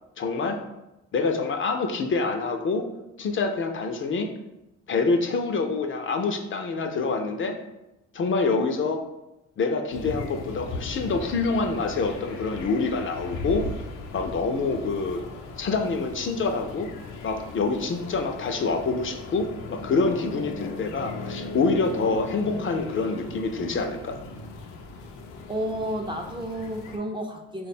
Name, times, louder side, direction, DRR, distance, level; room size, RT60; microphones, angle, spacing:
voice 1, 0.2-0.6 1.1-2.8 3.2-4.3 4.9-7.6 8.1-9.0 9.6-13.7 14.1-15.2 15.6-16.9 17.2-24.2, left 4 dB, 45° left, 5 dB, 0.4 m, -26 dB
sound 1, 9.9-27.0, left 3 dB, 90° left, 0.6 m, -38 dB
voice 2, 25.5-27.7, right 1 dB, 15° right, 2 dB, 0.4 m, -31 dB
3.3 x 2.2 x 4.1 m, 0.94 s
cardioid pair, 90°, 30 cm